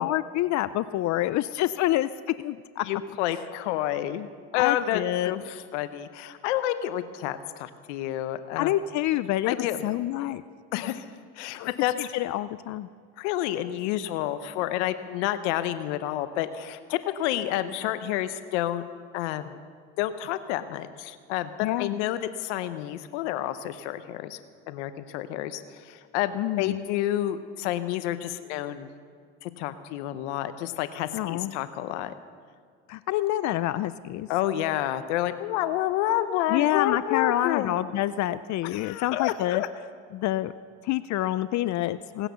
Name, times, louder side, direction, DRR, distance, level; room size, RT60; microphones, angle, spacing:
voice 1, 0.0-2.1 2.4-2.9 4.5-5.4 8.6-10.4 11.5-11.7 12.0-12.9 21.6-21.9 26.3-26.8 31.1-31.5 32.9-34.3 36.5-39.6 40.1-40.5 40.8-42.3, left 14 dB, 55° left, 15 dB, 0.5 m, -27 dB
voice 2, 2.8-4.3 4.5-8.8 9.5-9.8 10.7-11.1 11.4-11.9 13.2-18.8 19.1-19.6 20.0-24.4 24.7-28.9 29.4-32.1 34.3-37.8 38.6-39.7, left 13 dB, 90° left, 12 dB, 0.8 m, -29 dB
18.0 x 10.0 x 6.9 m, 2.1 s
supercardioid pair, 90°, 34 cm